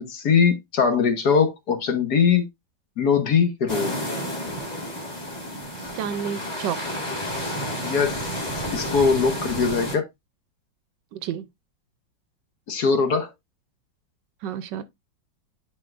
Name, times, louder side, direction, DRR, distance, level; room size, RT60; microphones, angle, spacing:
voice 1, 0.0-2.4 3.0-4.0 7.7-8.1 8.7-10.0 12.7-13.3, left 6 dB, 60° left, 1.6 m, -21 dB
sound 1, 3.7-10.0, equal, 20° left, 2.0 m, -30 dB
voice 2, 6.0-7.0 11.1-11.5 14.4-14.8, right 9 dB, 75° right, 1.1 m, -30 dB
10.0 x 4.7 x 2.4 m
omnidirectional pair, 2.1 m